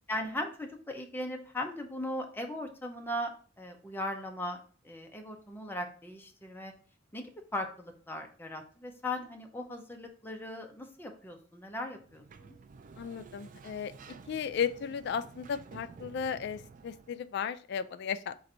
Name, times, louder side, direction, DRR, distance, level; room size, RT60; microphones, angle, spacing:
voice 1, 0.1-3.3 3.6-4.6 4.8-6.7 7.1-12.6, left 1 dB, 10° left, 3 dB, 0.6 m, -38 dB
Sliding door, 11.9-17.2, right 5 dB, 45° right, 0.3 m, -52 dB
voice 2, 13.0-13.9 14.3-18.5, left 7 dB, 60° left, 12 dB, 0.3 m, -35 dB
3.9 x 2.6 x 4.2 m, 0.42 s
head